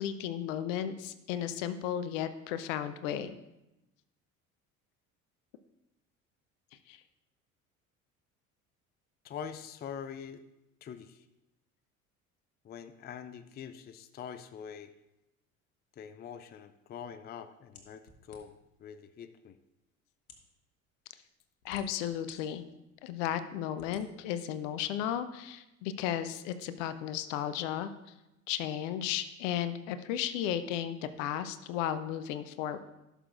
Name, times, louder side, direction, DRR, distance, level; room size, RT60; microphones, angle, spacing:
voice 1, 0.0-3.4 6.9-7.0 21.6-22.6 23.0-27.9 28.5-32.8, left 10 dB, 65° left, 12 dB, 0.8 m, -34 dB
voice 2, 9.2-10.4 10.8-11.3 12.6-14.9 16.0-19.6, left 7 dB, 25° left, 12 dB, 0.5 m, -44 dB
sound 1, 17.7-18.7 19.5-19.6 20.2-20.5 21.3-22.4 22.9-23.0 23.7-24.0, left 4 dB, 80° left, 1.2 m, -54 dB
15.5 x 6.7 x 2.5 m, 0.93 s
figure-of-eight pair, 60°, 42 cm